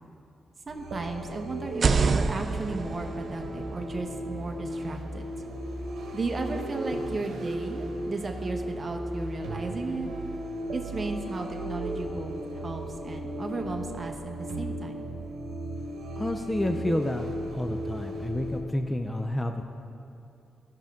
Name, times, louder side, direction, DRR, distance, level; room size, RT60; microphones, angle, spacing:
voice 1, 0.7-5.3 6.1-10.1 10.7-15.0, right 3 dB, 35° right, 3 dB, 0.9 m, -35 dB
sound 1, 0.7-18.6, right 1 dB, 90° right, 1.0 m, -36 dB
sound 2, 1.7-5.5, right 4 dB, 50° right, 0.4 m, -29 dB
voice 2, 16.2-17.2 17.5-19.7, left 1 dB, 15° left, 5 dB, 0.4 m, -29 dB
15.5 x 5.8 x 3.6 m, 2.7 s
cardioid pair, 105°, 0 cm